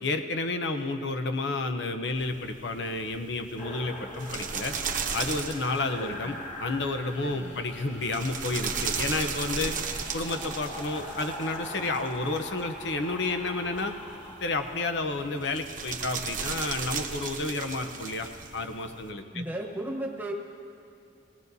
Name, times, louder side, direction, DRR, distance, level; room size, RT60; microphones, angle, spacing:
voice 1, 0.0-4.7 5.1-9.7 10.1-13.9 14.4-19.4, left 3 dB, 75° left, 7 dB, 0.7 m, -31 dB
sound 1, 2.1-19.1, right 6 dB, 50° right, 0.9 m, -37 dB
sound 2, 3.6-15.5, left 1 dB, 35° left, 1.5 m, -42 dB
voice 2, 6.0-6.4 7.2-7.6 19.3-20.3, right 1 dB, 10° right, -1 dB, 1.2 m, -36 dB
19.0 x 17.5 x 2.7 m, 2.5 s
head